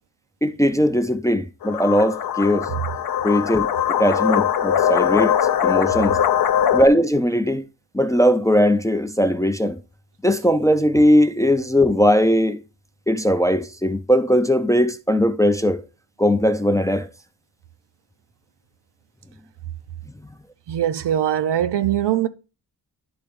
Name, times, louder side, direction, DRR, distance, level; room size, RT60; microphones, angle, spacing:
voice 1, 0.4-2.7 3.2-3.7 4.0-5.4 5.6-6.2 6.7-7.6 7.9-9.8 10.2-12.6 13.1-15.8 16.2-17.1, equal, 10° left, 0.3 m, -19 dB
sound 1, 1.6-6.9, left 9 dB, 60° left, 0.5 m, -21 dB
voice 2, 20.7-22.3, right 11 dB, 85° right, 0.6 m, -21 dB
10.5 x 3.8 x 3.5 m
wide cardioid pair, 130°, 40 cm